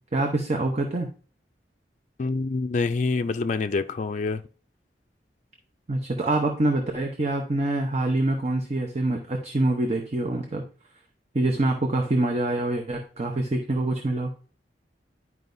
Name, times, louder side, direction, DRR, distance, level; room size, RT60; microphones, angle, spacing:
voice 1, 0.1-1.1 5.9-10.6 11.3-14.3, right 2 dB, 40° right, 0.8 m, -25 dB
voice 2, 2.2-4.4, left 3 dB, 45° left, 0.4 m, -26 dB
11.0 x 4.7 x 2.6 m
head